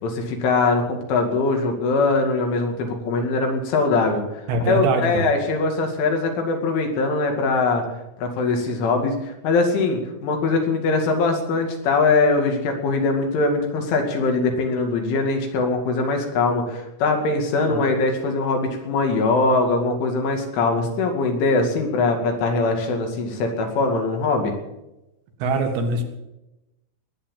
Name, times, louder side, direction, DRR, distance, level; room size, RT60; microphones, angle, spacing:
voice 1, 0.0-4.2 4.7-7.8 8.2-24.5, left 3 dB, 75° left, 3 dB, 4.8 m, -22 dB
voice 2, 4.5-5.3 17.6-17.9 25.4-26.0, right 3 dB, 65° right, 3 dB, 3.7 m, -23 dB
20.5 x 8.9 x 7.3 m, 0.95 s
omnidirectional pair, 5.6 m